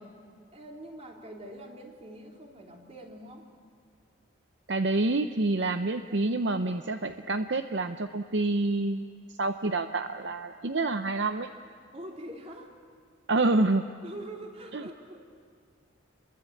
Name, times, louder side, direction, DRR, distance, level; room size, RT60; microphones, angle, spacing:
voice 1, 0.5-3.5 11.9-12.7 14.0-15.2, right 1 dB, 30° right, 1 dB, 3.2 m, -44 dB
voice 2, 4.7-11.5 13.3-13.8 14.7-14.8, right 2 dB, 60° right, 8 dB, 0.7 m, -27 dB
27.5 x 22.5 x 8.6 m, 2.3 s
head